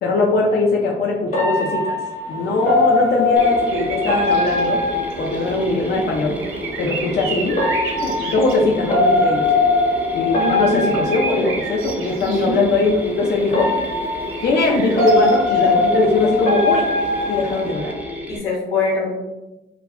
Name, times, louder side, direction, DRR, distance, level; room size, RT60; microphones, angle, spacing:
voice 1, 0.0-1.9 2.3-4.8 5.2-6.3 6.8-7.7 8.0-9.5 10.1-13.7 14.4-16.8 17.3-17.9, left 3 dB, 55° left, -1 dB, 0.5 m, -20 dB
sound 1, 1.3-5.9 7.5-12.1 13.5-18.1, left 2 dB, 40° left, 0.8 m, -21 dB
sound 2, 2.1-18.1, right 4 dB, 90° right, 0.5 m, -34 dB
Mechanisms, 3.4-18.4, equal, 10° right, 0.4 m, -32 dB
voice 2, 10.3-11.0 12.3-12.4 18.3-19.1, left 3 dB, 90° left, -3 dB, 0.9 m, -24 dB
2.2 x 2.1 x 3.5 m, 0.99 s
cardioid pair, 90°, 20 cm